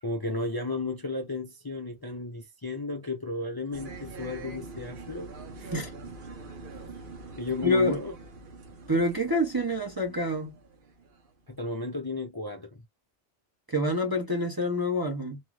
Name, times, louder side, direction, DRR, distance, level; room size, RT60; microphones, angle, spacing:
voice 1, 0.0-5.3 5.6-5.8 6.9-7.0 7.4-8.1 11.5-12.8, left 2 dB, 30° left, 0.5 m, -34 dB
sound 1, 3.7-11.5, right 3 dB, 50° right, 0.8 m, -44 dB
voice 2, 7.6-8.0 8.9-10.6 13.7-15.4, left 1 dB, 25° right, 0.6 m, -27 dB
2.5 x 2.4 x 3.1 m
omnidirectional pair, 1.2 m